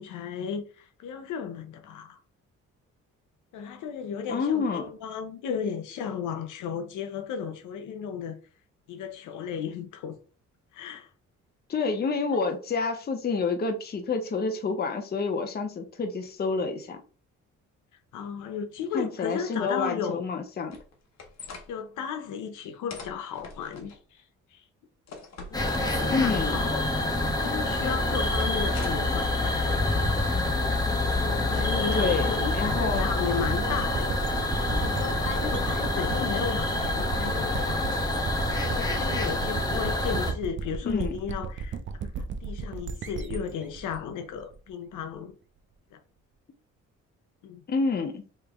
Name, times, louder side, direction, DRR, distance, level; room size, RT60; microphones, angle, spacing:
voice 1, 0.0-2.2 3.5-8.4 8.9-10.2 10.7-11.1 18.1-20.2 21.7-24.2 24.5-24.6 25.5-26.8 27.4-29.7 31.1-38.0 38.5-41.8 42.2-45.4 45.9-46.0 47.4-47.6, left 7 dB, 80° left, 0.8 m, -35 dB
voice 2, 4.3-4.9 11.7-17.0 18.9-20.8 26.1-26.6 31.9-32.3 32.5-33.1 40.9-41.1 47.7-48.2, left 4 dB, 30° left, 0.8 m, -28 dB
sound 1, 20.7-21.7 22.9-24.0 25.1-26.4 28.3-29.2 30.0-30.5, left 4 dB, 60° left, 1.1 m, -43 dB
sound 2, 25.5-40.3, left 2 dB, 10° left, 1.1 m, -27 dB
sound 3, 32.4-45.0, right 5 dB, 40° right, 0.5 m, -36 dB
3.2 x 3.0 x 3.6 m
cardioid pair, 90°, 30 cm